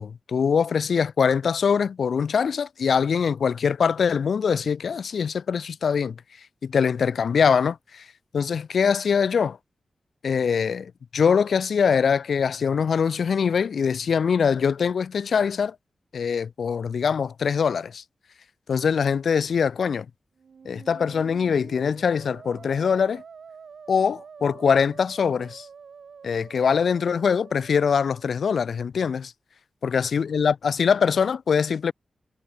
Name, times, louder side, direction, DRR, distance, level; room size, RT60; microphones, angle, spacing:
voice 1, 0.0-6.2 6.6-8.1 8.3-9.6 10.2-15.8 16.1-18.0 18.7-20.1 20.6-23.2 23.9-25.7 26.2-29.3 29.8-31.9, left 6 dB, 80° left, 0.7 m, -23 dB
Musical instrument, 20.4-28.4, right 6 dB, 75° right, 4.3 m, -46 dB
cardioid pair, 65°, 0 cm